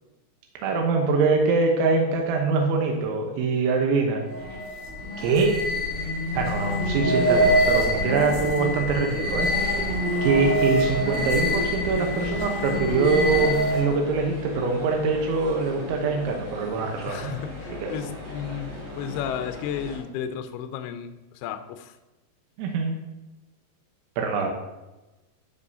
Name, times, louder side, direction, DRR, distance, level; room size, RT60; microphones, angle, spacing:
voice 1, 0.6-4.3 5.2-5.6 6.3-9.7 10.2-17.3 17.8-17.9 22.6-23.0 24.2-24.5, right 4 dB, 90° right, 2 dB, 3.4 m, -24 dB
sound 1, 4.2-14.0, equal, 55° right, 2.1 m, -25 dB
sound 2, 9.2-20.0, left 2 dB, 40° right, 3.1 m, -39 dB
voice 2, 17.1-21.9, left 8 dB, 85° left, 8 dB, 2.2 m, -33 dB
14.5 x 5.4 x 2.7 m, 1.0 s
omnidirectional pair, 5.3 m